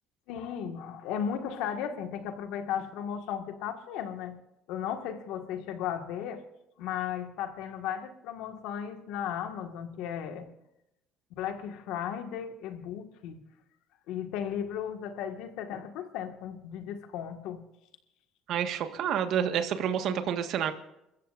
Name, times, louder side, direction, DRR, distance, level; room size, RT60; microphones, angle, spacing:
voice 1, 0.3-4.4 4.7-6.4 6.8-10.5 11.4-13.4 14.1-17.6, left 8 dB, 80° left, 1.8 m, -35 dB
voice 2, 18.5-20.7, right 8 dB, 65° right, 1.6 m, -29 dB
28.5 x 14.5 x 2.6 m
cardioid pair, 105°, 0 cm